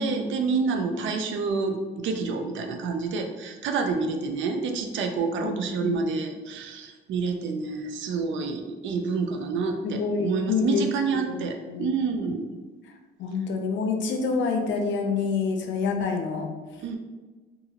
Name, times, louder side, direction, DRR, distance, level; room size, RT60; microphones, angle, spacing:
voice 1, 0.0-12.5 16.8-17.0, right 4 dB, 75° right, 5 dB, 0.4 m, -28 dB
voice 2, 9.8-10.8 11.3-11.9 13.2-16.5, left 5 dB, 70° left, 4 dB, 0.5 m, -27 dB
2.8 x 2.6 x 2.8 m, 1.3 s
cardioid pair, 90°, 20 cm